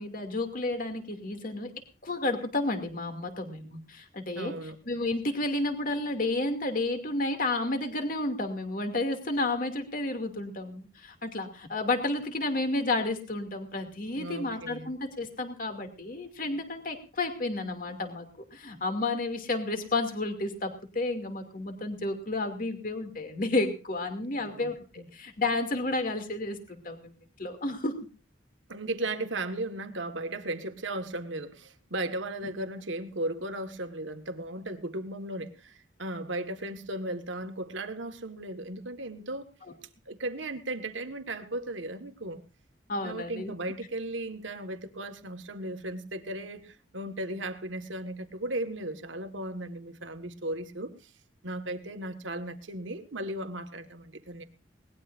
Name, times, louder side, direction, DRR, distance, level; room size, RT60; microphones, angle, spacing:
voice 1, 0.0-1.7 2.0-4.5 4.9-27.1 27.4-28.0 42.9-43.5, left 2 dB, 45° left, 2.6 m, -31 dB
voice 2, 4.3-4.8 14.1-14.9 24.4-25.1 28.7-39.5 40.1-42.4 43.0-50.9 51.4-54.4, right 1 dB, 85° right, 1.7 m, -36 dB
21.0 x 19.0 x 2.6 m
head